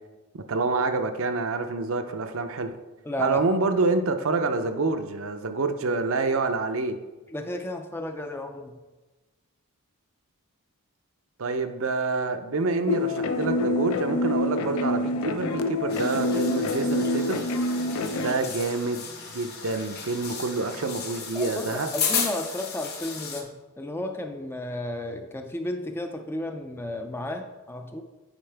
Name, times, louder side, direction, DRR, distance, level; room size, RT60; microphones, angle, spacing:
voice 1, 0.3-2.7 3.2-7.0 11.4-17.4 18.2-21.9, right 3 dB, 65° right, 7 dB, 0.6 m, -27 dB
voice 2, 3.0-3.4 7.3-8.8 21.3-28.0, left 1 dB, 10° left, 5 dB, 0.4 m, -33 dB
sound 1, 12.9-18.3, left 2 dB, 70° left, 0.5 m, -26 dB
sound 2, 15.9-23.4, left 6 dB, 45° left, 1.0 m, -34 dB
8.9 x 4.7 x 3.4 m, 1.2 s
head